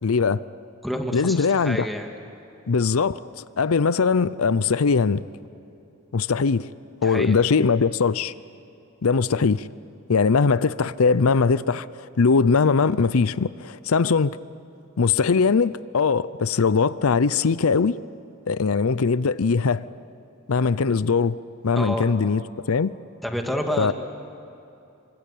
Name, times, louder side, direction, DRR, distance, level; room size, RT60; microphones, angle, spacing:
voice 1, 0.0-0.4 1.1-1.9 2.7-5.2 6.1-6.7 7.0-8.3 9.0-9.7 10.1-14.4 15.0-18.0 18.5-19.8 20.5-21.4 21.6-22.4 22.7-22.9 23.8-23.9, left 5 dB, 85° left, 0.6 m, -21 dB
voice 2, 0.8-2.1 7.0-7.3 21.7-22.1 23.2-23.9, equal, ahead, 2.3 m, -28 dB
27.5 x 25.0 x 8.6 m
head